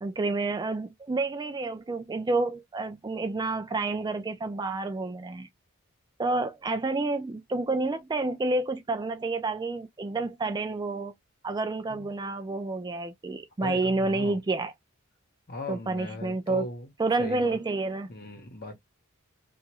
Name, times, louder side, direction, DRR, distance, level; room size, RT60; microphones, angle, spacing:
voice 1, 0.0-5.5 6.2-11.1 11.4-14.7 15.7-16.6 17.0-18.1, right 3 dB, 20° right, 0.3 m, -29 dB
voice 2, 13.6-14.4 15.5-16.9 17.2-17.6 18.1-18.8, left 1 dB, 45° left, 1.0 m, -38 dB
2.9 x 2.4 x 2.9 m
head